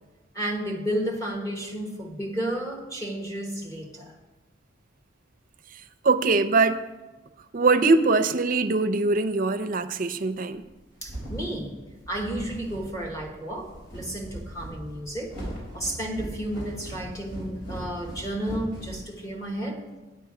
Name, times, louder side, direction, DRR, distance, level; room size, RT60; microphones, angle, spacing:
voice 1, 0.3-4.1 11.0-11.8 12.1-15.4 15.7-19.9, right 1 dB, 15° left, -1 dB, 1.2 m, -32 dB
voice 2, 5.7-6.8 7.5-10.6, right 3 dB, 45° right, 11 dB, 0.5 m, -22 dB
sound 1, 10.6-19.6, right 1 dB, 70° left, 4.0 m, -39 dB
9.0 x 8.6 x 4.8 m, 1.2 s
head